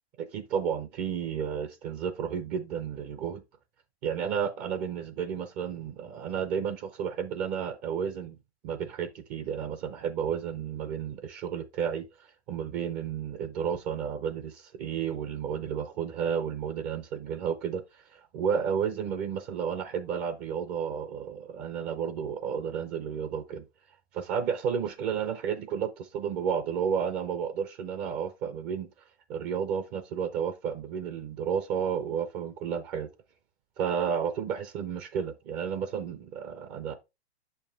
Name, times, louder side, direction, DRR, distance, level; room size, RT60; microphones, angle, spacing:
voice 1, 0.2-3.4 4.0-8.4 8.6-12.0 12.5-23.6 24.1-28.9 29.3-33.1 33.8-36.9, right 7 dB, 30° right, 0.6 m, -32 dB
6.8 x 5.6 x 3.2 m
hypercardioid pair, 120°, 34 cm